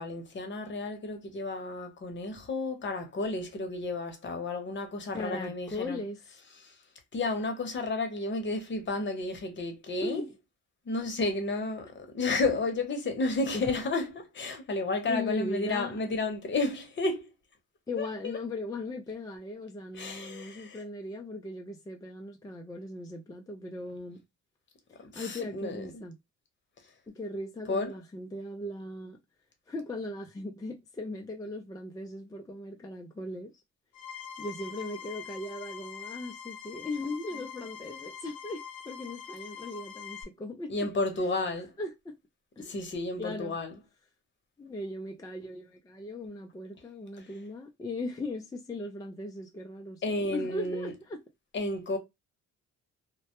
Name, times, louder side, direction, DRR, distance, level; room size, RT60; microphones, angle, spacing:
voice 1, 0.0-6.0 6.6-6.8 7.1-10.2 10.8-17.3 18.0-18.4 19.9-20.8 25.0-26.0 27.7-27.9 40.7-41.7 42.6-43.8 47.2-47.3 50.0-50.9 51.5-52.0, left 2 dB, 40° left, 0.8 m, -32 dB
voice 2, 5.1-6.2 10.0-10.3 13.5-13.7 15.1-16.0 17.9-24.2 25.1-26.1 27.1-29.2 29.7-33.5 34.4-40.7 41.8-42.2 42.6-42.8 43.2-43.6 44.6-51.2, left 2 dB, 15° left, 0.3 m, -38 dB
sound 1, 33.9-40.2, left 8 dB, 90° left, 0.7 m, -44 dB
2.1 x 2.1 x 2.8 m
cardioid pair, 90°, 30 cm